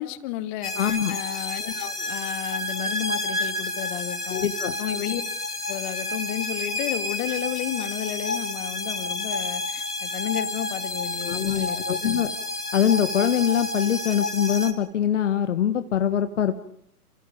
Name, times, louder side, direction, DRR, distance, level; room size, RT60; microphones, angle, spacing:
voice 1, 0.0-4.5 4.8-5.2 5.7-12.0, left 14 dB, 35° left, 10 dB, 2.3 m, -32 dB
sound 1, 0.6-14.7, left 2 dB, 85° left, 4.3 m, -30 dB
voice 2, 0.8-1.2 4.3-4.8 11.2-12.3 12.7-16.6, left 9 dB, 55° left, 9 dB, 1.8 m, -23 dB
30.0 x 28.5 x 5.3 m, 0.69 s
figure-of-eight pair, 125°, 45 cm